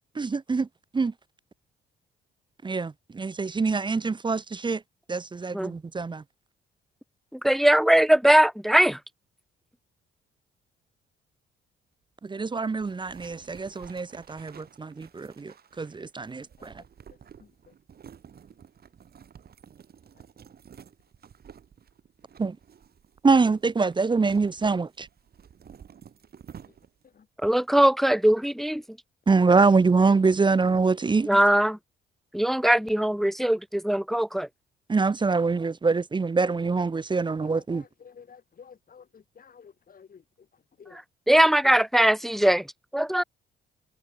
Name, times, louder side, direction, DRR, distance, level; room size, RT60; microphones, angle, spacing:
voice 1, 0.2-0.7 0.9-1.1 2.6-4.8 5.1-6.2 12.2-16.7 22.4-22.6 23.2-25.1 29.3-31.3 34.9-37.8, right 4 dB, 25° right, 0.8 m, -24 dB
voice 2, 7.3-9.0 27.4-28.8 31.3-31.8 32.3-34.5 41.3-42.7 42.9-43.2, right 1 dB, ahead, 0.3 m, -21 dB
sound 1, 12.8-27.1, right 8 dB, 50° right, 4.0 m, -51 dB
voice 3, 16.6-17.7 20.1-20.3 26.6-26.8 27.0-27.3 37.2-41.0 41.4-41.8 42.5-42.6, left 6 dB, 45° left, 7.7 m, -53 dB
cardioid pair, 90°, 20 cm